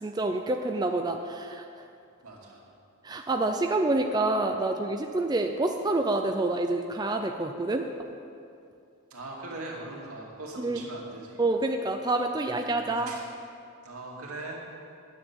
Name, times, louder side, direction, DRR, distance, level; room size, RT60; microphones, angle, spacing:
voice 1, 0.0-1.8 3.0-7.9 10.6-10.8 11.4-13.1, right 2 dB, 20° right, 4 dB, 0.5 m, -27 dB
voice 2, 2.2-2.7 9.1-11.4 12.7-13.3 13.8-14.6, right 2 dB, 80° right, -3 dB, 2.4 m, -40 dB
9.7 x 7.7 x 8.7 m, 2.5 s
head